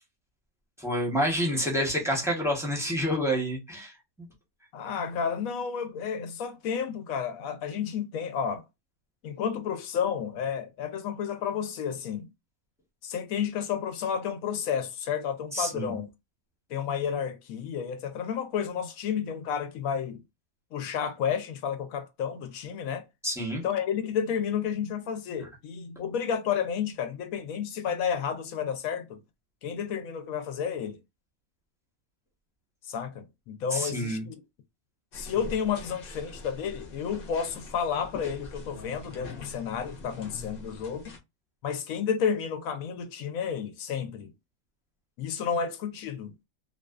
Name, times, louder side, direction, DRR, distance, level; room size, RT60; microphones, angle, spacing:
voice 1, 0.8-3.9 15.5-15.9 23.2-23.6 33.7-34.2, equal, 5° right, 0.6 m, -28 dB
voice 2, 4.7-8.6 9.2-12.3 13.0-16.1 16.7-20.2 20.7-23.0 23.5-29.2 29.6-31.0 32.9-34.4 35.1-41.1 41.6-44.3 45.2-46.3, left 7 dB, 75° left, 1.0 m, -31 dB
sound 1, 35.1-41.2, left 3 dB, 50° left, 0.8 m, -43 dB
2.4 x 2.4 x 2.3 m
omnidirectional pair, 1.5 m